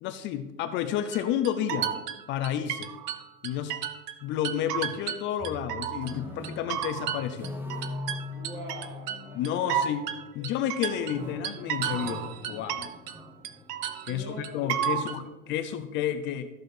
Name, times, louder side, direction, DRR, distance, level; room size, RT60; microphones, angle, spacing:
voice 1, 0.0-1.9 2.3-2.9 3.4-3.7 4.2-7.5 9.3-10.0 10.3-12.9 14.1-16.5, left 10 dB, 25° left, 8 dB, 0.4 m, -31 dB
sound 1, 1.1-4.2 4.4-6.1 6.4-13.2 13.4-15.2, right 10 dB, 80° right, 1.0 m, -32 dB
sound 2, 5.4-10.6 11.0-14.1, left 2 dB, 5° right, 0.7 m, -41 dB
voice 2, 8.1-9.8 10.3-10.6 14.1-15.2 15.6-15.8, right 2 dB, 25° right, -1 dB, 1.7 m, -44 dB
14.0 x 6.2 x 4.8 m, 1.1 s
supercardioid pair, 145°, 47 cm